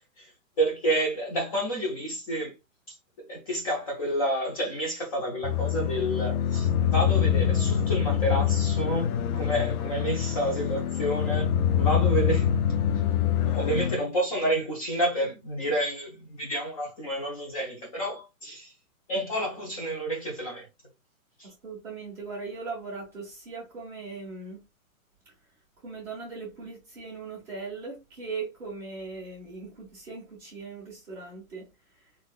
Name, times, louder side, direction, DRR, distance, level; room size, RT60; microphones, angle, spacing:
voice 1, 0.6-2.5 3.3-11.5 11.8-12.5 13.4-18.7 19.1-20.7 21.4-21.5, right 1 dB, 25° left, 0.7 m, -29 dB
sound 1, 5.4-14.0, left 9 dB, 85° left, 0.6 m, -25 dB
voice 2, 21.4-24.6 25.8-32.1, right 4 dB, 5° right, 0.8 m, -39 dB
4.1 x 2.5 x 2.4 m
hypercardioid pair, 170°, 42 cm